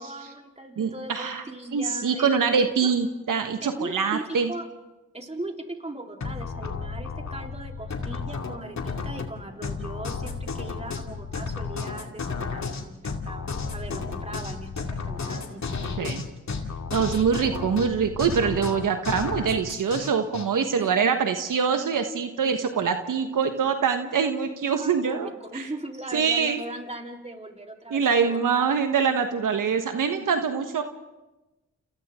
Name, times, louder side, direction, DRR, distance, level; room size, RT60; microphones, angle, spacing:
voice 1, 0.0-2.9 3.6-4.7 5.1-15.6 15.9-16.2 17.0-17.7 20.8-20.9 24.7-28.7, right 1 dB, 20° right, 1 dB, 3.8 m, -39 dB
voice 2, 0.8-1.4 1.7-4.5 16.0-16.2 16.9-25.7 26.1-26.6 27.9-30.8, right 6 dB, 70° right, 6 dB, 1.4 m, -24 dB
sound 1, 6.2-20.5, left 4 dB, 55° left, 2.5 m, -33 dB
30.0 x 28.0 x 3.7 m, 1.1 s
cardioid pair, 55°, 33 cm